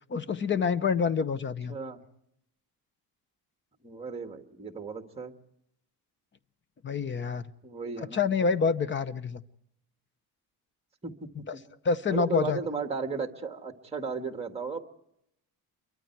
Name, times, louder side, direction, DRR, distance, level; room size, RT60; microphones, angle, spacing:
voice 1, 0.1-1.7 6.8-7.4 8.0-9.4 11.8-12.6, left 5 dB, 30° left, 15 dB, 0.8 m, -27 dB
voice 2, 1.7-2.0 3.8-5.3 7.6-8.2 11.0-11.6 12.1-14.8, right 5 dB, 15° right, 5 dB, 1.8 m, -35 dB
28.5 x 23.5 x 4.6 m, 0.78 s
cardioid pair, 140°, 39 cm